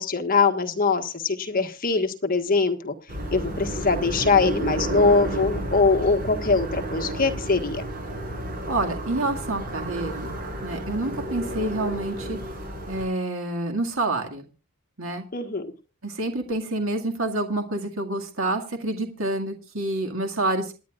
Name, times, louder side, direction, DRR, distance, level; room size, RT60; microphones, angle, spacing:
voice 1, 0.0-2.9 3.3-7.8 15.3-15.7, left 4 dB, 40° left, 5 dB, 1.5 m, -22 dB
sound 1, 3.1-13.1, right 1 dB, 40° right, 6.3 m, -31 dB
voice 2, 8.7-10.3 10.6-12.4 12.9-14.5 15.0-15.3 16.0-20.7, right 2 dB, 65° right, 3 dB, 2.0 m, -28 dB
27.5 x 10.0 x 2.4 m, 0.31 s
head